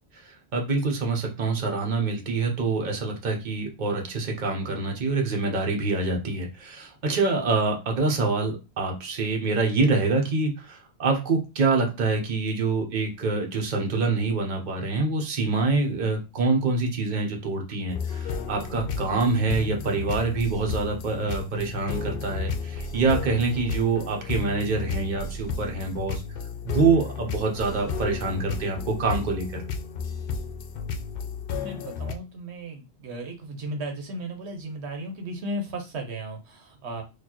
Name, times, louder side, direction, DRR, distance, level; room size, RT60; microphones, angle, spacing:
voice 1, 0.1-26.2 26.6-29.6, right 3 dB, 45° right, 2 dB, 1.0 m, -26 dB
sound 1, 17.9-32.1, left 5 dB, 60° left, 0.7 m, -33 dB
voice 2, 31.6-37.0, right 1 dB, 80° right, 4 dB, 1.0 m, -35 dB
4.3 x 2.4 x 2.9 m, 0.27 s
omnidirectional pair, 1.1 m